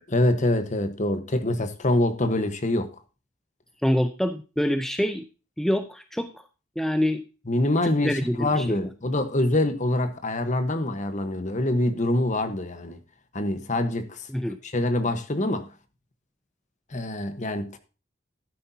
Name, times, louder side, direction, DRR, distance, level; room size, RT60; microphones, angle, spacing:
voice 1, 0.1-2.9 7.5-13.0 13.3-14.3 14.7-15.7 16.9-17.8, left 1 dB, 35° left, 1.2 m, -25 dB
voice 2, 3.8-5.2 5.6-6.4 6.8-7.2 7.8-8.9 14.3-14.6, equal, ahead, 0.6 m, -26 dB
12.0 x 9.7 x 2.8 m
head